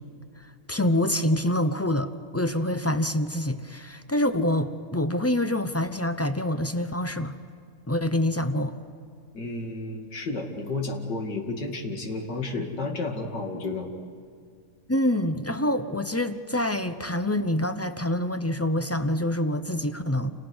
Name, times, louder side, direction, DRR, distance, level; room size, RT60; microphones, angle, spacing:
voice 1, 0.7-7.4 7.9-8.8 14.9-20.3, left 1 dB, 20° left, 10 dB, 0.4 m, -26 dB
voice 2, 9.3-13.9, left 3 dB, 90° left, 2 dB, 3.1 m, -32 dB
29.5 x 29.5 x 6.3 m, 2.2 s
omnidirectional pair, 1.8 m